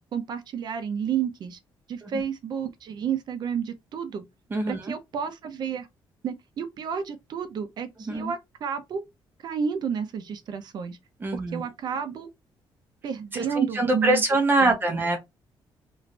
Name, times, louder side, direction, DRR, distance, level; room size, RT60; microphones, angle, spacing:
voice 1, 0.1-1.6 1.9-4.2 4.7-5.9 6.2-9.0 9.4-11.0 11.3-12.3 13.0-14.2 14.6-15.0, right 7 dB, 55° right, 0.6 m, -31 dB
voice 2, 4.5-4.9 8.0-8.3 11.2-11.6 13.3-15.2, right 2 dB, 25° right, 0.9 m, -24 dB
3.1 x 2.5 x 3.2 m
cardioid pair, 155°, 9 cm